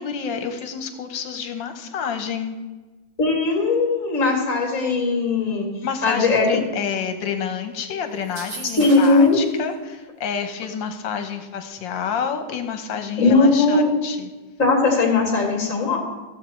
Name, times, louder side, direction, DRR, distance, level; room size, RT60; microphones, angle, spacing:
voice 1, 0.0-2.6 5.8-14.3, left 7 dB, 80° left, 7 dB, 1.7 m, -29 dB
voice 2, 3.2-5.7 6.0-6.5 8.8-9.4 13.2-13.9 14.6-16.0, left 3 dB, 40° left, 0 dB, 2.8 m, -18 dB
sound 1, 8.2-9.4, right 4 dB, 55° right, 1.7 m, -36 dB
15.5 x 7.3 x 4.5 m, 1.3 s
omnidirectional pair, 2.0 m